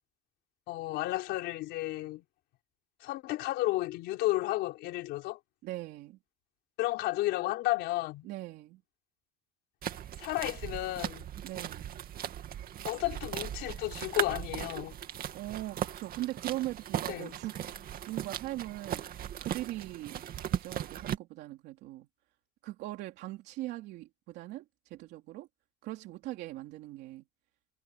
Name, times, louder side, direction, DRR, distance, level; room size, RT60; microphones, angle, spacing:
voice 1, 0.7-2.2 3.0-5.4 6.8-8.3 10.2-11.2 12.8-14.9 17.1-17.3, left 17 dB, 90° left, 4.7 m, -32 dB
voice 2, 5.6-6.2 8.2-8.8 11.4-12.0 15.3-17.6 18.1-19.1 19.4-22.1 22.6-25.5 25.8-27.2, right 16 dB, 90° right, 3.2 m, -40 dB
sound 1, 9.8-21.2, right 10 dB, 60° right, 2.3 m, -38 dB
cardioid pair, 110°, 17 cm